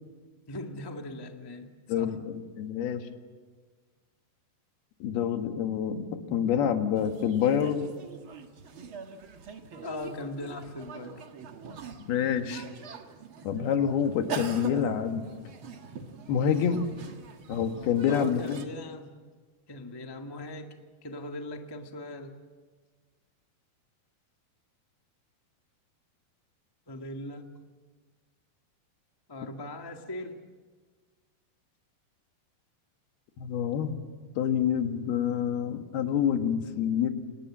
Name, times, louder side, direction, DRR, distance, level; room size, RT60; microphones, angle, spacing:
voice 1, 0.5-2.2 9.8-11.2 18.1-19.2 19.7-20.7 21.0-22.4 26.9-27.6 29.3-30.4, left 2 dB, 30° left, 3 dB, 0.4 m, -40 dB
voice 2, 1.9-3.1 5.0-7.9 12.1-12.7 13.5-15.2 16.3-16.8 17.5-18.7 33.4-34.0 34.4-37.1, left 8 dB, 80° left, 6 dB, 3.6 m, -27 dB
sound 1, 7.0-18.7, right 5 dB, 45° right, 1.8 m, -43 dB
29.5 x 26.5 x 7.5 m, 1.5 s
omnidirectional pair, 4.4 m